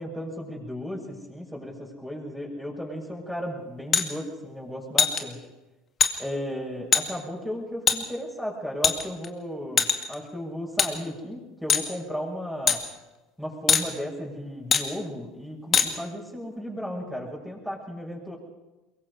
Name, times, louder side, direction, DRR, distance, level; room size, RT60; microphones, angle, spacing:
voice 1, 0.0-5.5 6.2-12.8 13.4-18.4, equal, 5° left, -2 dB, 6.6 m, -35 dB
sound 1, 3.9-4.1 5.0-5.2 6.0-6.1 6.9-7.0 7.9-8.0 8.8-9.3 9.8-10.1 10.8-10.9 11.7-11.9 12.7-12.8 13.7-13.8 14.7-14.8 15.7-15.9, left 7 dB, 35° left, 2.2 m, -21 dB
23.0 x 22.5 x 5.0 m, 1.1 s
figure-of-eight pair, 70°, 0 cm